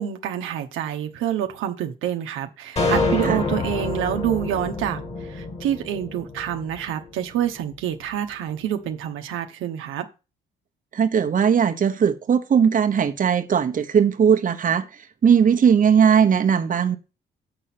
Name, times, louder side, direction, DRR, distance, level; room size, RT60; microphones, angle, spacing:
voice 1, 0.0-5.0 5.3-10.0, right 10 dB, 90° right, 0.9 m, -27 dB
sound 1, 2.8-7.2, left 3 dB, 30° left, 1.8 m, -27 dB
voice 2, 10.9-14.9 15.2-17.0, right 7 dB, 40° right, 1.0 m, -18 dB
7.8 x 4.2 x 5.9 m
cardioid pair, 90°, 20 cm